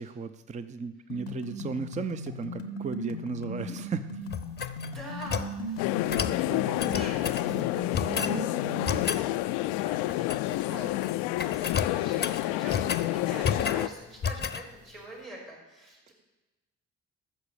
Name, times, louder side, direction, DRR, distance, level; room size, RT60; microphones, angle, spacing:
voice 1, 0.0-4.3 5.9-6.3, right 5 dB, 20° right, 11 dB, 0.6 m, -36 dB
sound 1, 1.1-9.1, left 1 dB, 85° left, 0.9 m, -37 dB
sound 2, 4.3-5.5 6.1-6.4 6.8-7.5 7.9-8.4 8.8-9.3 10.1-10.7 10.9-11.1 11.4-13.1 13.4-13.9 14.2-14.6, left 6 dB, 25° left, 0.7 m, -32 dB
voice 2, 4.8-6.2 6.6-16.1, right 1 dB, 75° right, -5 dB, 4.2 m, -44 dB
sound 3, 5.8-13.9, left 17 dB, 65° left, 0.5 m, -29 dB
14.5 x 6.6 x 6.8 m, 1.1 s
figure-of-eight pair, 45°, 37 cm